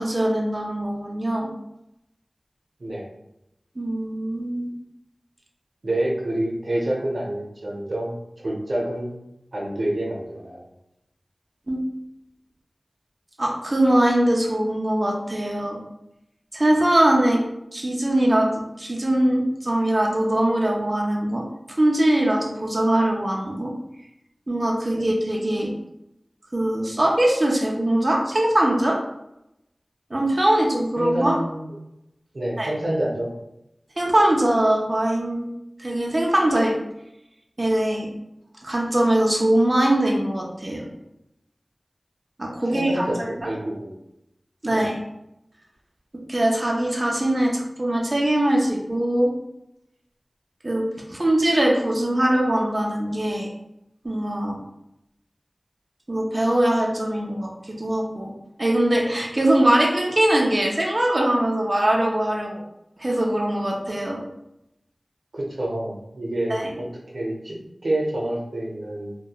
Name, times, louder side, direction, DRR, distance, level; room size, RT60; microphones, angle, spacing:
voice 1, 0.0-1.5 3.8-4.7 11.7-11.9 13.4-15.8 16.5-17.4 17.7-18.5 18.8-21.4 21.8-23.7 24.5-25.7 26.5-29.0 30.1-31.4 32.6-32.7 34.0-35.4 35.8-36.7 37.6-38.1 38.6-40.9 42.4-43.1 43.4-43.5 44.6-45.0 46.3-49.3 50.6-50.8 51.1-53.5 54.0-54.6 56.1-58.3 58.6-62.6 63.0-64.2 66.5-66.7, right 1 dB, 40° right, -2 dB, 0.4 m, -21 dB
voice 2, 5.8-9.2 9.5-10.6 25.0-25.1 31.0-31.7 32.3-33.3 42.7-43.9 44.7-44.9 65.3-69.2, right 1 dB, 90° right, -2 dB, 0.5 m, -28 dB
2.8 x 2.1 x 2.3 m, 0.85 s
wide cardioid pair, 60°, 0 cm